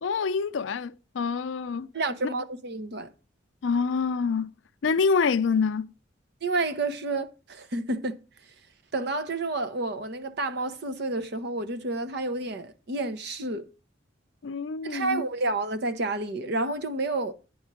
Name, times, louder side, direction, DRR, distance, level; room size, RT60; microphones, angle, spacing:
voice 1, 0.0-1.9 3.6-4.5 4.8-5.9 14.4-15.2, left 5 dB, 75° left, 0.5 m, -26 dB
voice 2, 1.9-3.1 6.4-8.2 8.9-13.7 14.8-17.3, right 2 dB, 60° right, 0.8 m, -30 dB
9.4 x 4.3 x 5.9 m
head